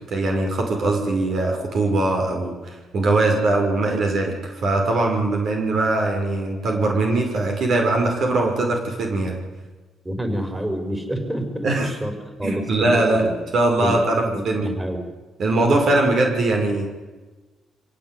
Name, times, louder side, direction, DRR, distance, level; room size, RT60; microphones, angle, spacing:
voice 1, 0.0-9.4 11.6-11.9 12.4-13.3 13.5-14.7 15.4-16.9, right 2 dB, 60° right, 2 dB, 5.8 m, -21 dB
voice 2, 10.0-13.4 13.8-15.0 15.7-15.8, equal, 10° right, 6 dB, 5.8 m, -28 dB
25.5 x 17.5 x 9.5 m, 1.2 s
cardioid pair, 90°, 0 cm